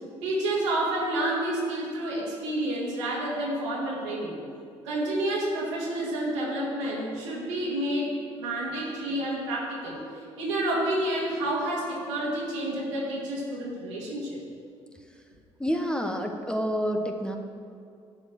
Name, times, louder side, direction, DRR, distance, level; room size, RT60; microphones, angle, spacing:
voice 1, 0.2-4.4 4.8-10.0 10.4-14.4, right 1 dB, 80° right, -5 dB, 2.4 m, -29 dB
voice 2, 15.6-17.4, equal, 5° left, 3 dB, 1.2 m, -28 dB
12.0 x 5.1 x 7.5 m, 2.4 s
hypercardioid pair, 50°, 15 cm